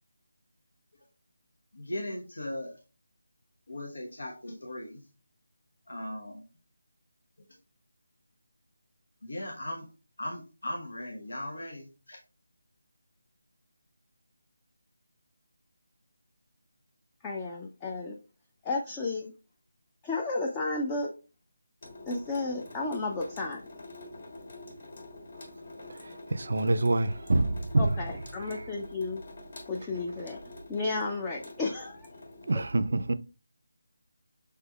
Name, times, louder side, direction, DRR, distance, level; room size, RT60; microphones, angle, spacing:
voice 1, 1.7-2.7 3.7-5.0 5.9-6.4 9.2-9.9 10.2-12.2, left 1 dB, 90° left, 1.0 m, -38 dB
voice 2, 17.2-18.2 18.6-19.3 20.0-21.1 22.1-23.6 27.8-29.2 29.7-30.4 30.7-32.1, left 3 dB, 10° left, 0.4 m, -32 dB
Water tap faucet / Sink (filling or washing) / Drip, 21.8-32.6, left 2 dB, 65° left, 1.5 m, -47 dB
voice 3, 26.3-27.9 32.5-33.1, right 2 dB, 60° right, 0.4 m, -25 dB
5.8 x 3.4 x 2.3 m
figure-of-eight pair, 170°, 0 cm